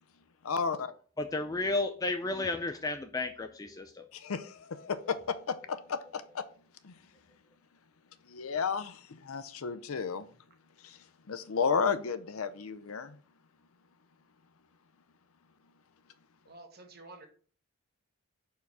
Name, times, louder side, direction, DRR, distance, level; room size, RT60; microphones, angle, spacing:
voice 1, 0.4-0.9 4.1-6.4 6.8-6.9 8.3-10.3 10.8-11.0 11.3-13.2, left 5 dB, 75° left, 12 dB, 0.6 m, -33 dB
voice 2, 1.2-4.1, left 2 dB, 15° left, 6 dB, 0.3 m, -33 dB
voice 3, 16.5-17.3, right 2 dB, 45° right, 4 dB, 1.2 m, -50 dB
5.6 x 4.6 x 4.7 m, 0.43 s
head